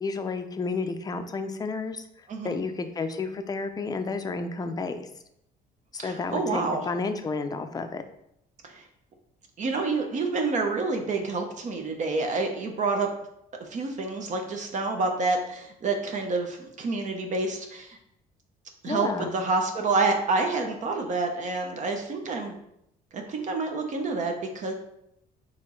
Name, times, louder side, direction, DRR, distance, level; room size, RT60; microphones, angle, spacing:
voice 1, 0.0-5.1 5.9-8.0 18.9-19.4, left 4 dB, 20° left, 8 dB, 0.4 m, -31 dB
voice 2, 6.0-6.8 8.6-8.8 9.6-13.1 13.7-18.0 18.8-22.6 23.1-24.7, right 3 dB, 45° right, 3 dB, 0.7 m, -28 dB
4.3 x 3.0 x 3.8 m, 0.78 s
cardioid pair, 110°, 17 cm